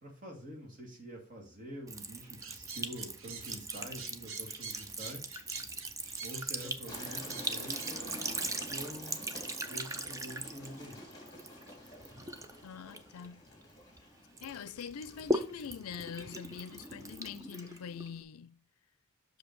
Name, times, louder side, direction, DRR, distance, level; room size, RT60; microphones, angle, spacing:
voice 1, 0.0-5.3 6.2-9.2 9.7-11.0, equal, 40° right, 2.3 m, -46 dB
Sink (filling or washing) / Trickle dribble, 1.9-14.0 14.4-18.2, right 1 dB, 15° right, 0.5 m, -40 dB
sound 1, 2.4-8.3, right 5 dB, 65° right, 1.0 m, -46 dB
sound 2, 6.9-18.1, left 1 dB, 20° left, 2.6 m, -50 dB
voice 2, 12.6-13.4 14.4-18.6, left 7 dB, 90° left, 0.4 m, -44 dB
6.3 x 5.2 x 4.6 m
head